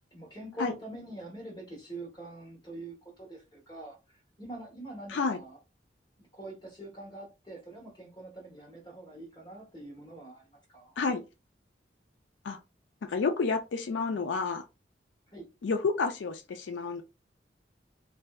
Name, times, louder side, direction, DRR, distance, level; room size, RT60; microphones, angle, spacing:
voice 1, 0.1-4.0 4.4-5.6 6.3-11.0 15.3-15.5, right 2 dB, 25° left, 1.2 m, -44 dB
voice 2, 13.1-14.6 15.6-17.0, left 4 dB, 90° left, 0.4 m, -30 dB
3.2 x 2.6 x 2.3 m
head